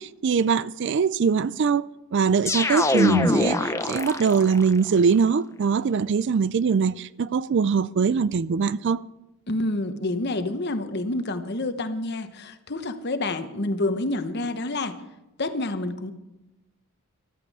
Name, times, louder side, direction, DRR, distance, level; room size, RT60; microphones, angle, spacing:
voice 1, 0.0-1.8 2.1-9.0, right 5 dB, 50° right, 0.4 m, -22 dB
sound 1, 2.5-4.7, left 2 dB, 15° left, 0.6 m, -23 dB
voice 2, 9.5-15.0 15.4-16.1, left 2 dB, 50° left, 1.1 m, -28 dB
14.0 x 13.0 x 4.9 m
head